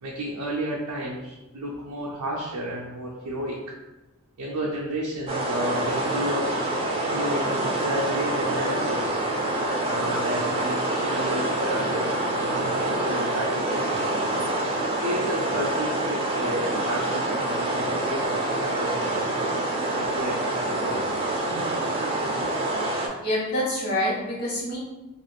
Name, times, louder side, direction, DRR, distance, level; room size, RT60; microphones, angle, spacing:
voice 1, 0.0-3.7 4.4-6.6 7.1-9.2 9.8-13.9 14.8-19.3 19.9-21.1, equal, 90° right, -3 dB, 0.5 m, -32 dB
sound 1, 5.3-23.1, right 1 dB, 25° right, 0.4 m, -26 dB
voice 2, 23.2-24.8, left 1 dB, 45° left, -6 dB, 1.1 m, -26 dB
2.4 x 2.4 x 3.2 m, 1.0 s
head